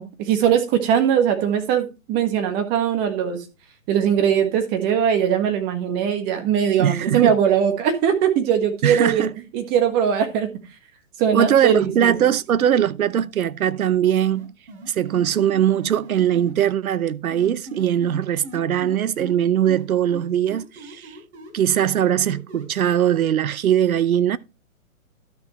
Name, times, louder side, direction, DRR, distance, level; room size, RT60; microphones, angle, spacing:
voice 1, 0.0-3.4 3.9-9.3 9.5-10.5 11.2-12.1, right 8 dB, 20° right, 1.5 m, -20 dB
voice 2, 6.8-7.4 8.8-9.3 11.3-14.5 14.9-21.2 21.5-24.4, right 10 dB, 75° right, 0.7 m, -21 dB
sound 1, 14.3-16.5 17.3-19.4 19.6-23.2, right 2 dB, 50° right, 3.9 m, -39 dB
12.5 x 6.0 x 3.1 m
hypercardioid pair, 140°, 43 cm